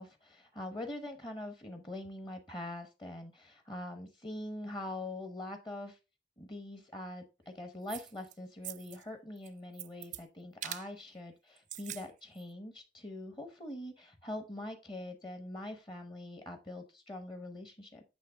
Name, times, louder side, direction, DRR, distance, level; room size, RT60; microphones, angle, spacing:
voice 1, 0.0-6.0 6.4-18.0, left 1 dB, 25° left, 6 dB, 0.9 m, -43 dB
sound 1, 7.9-8.3 8.6-9.0 9.4-10.2 10.6-10.9 11.6-12.1 12.4-12.5, right 13 dB, 45° right, 0.3 m, -43 dB
8.4 x 3.2 x 4.6 m, 0.28 s
head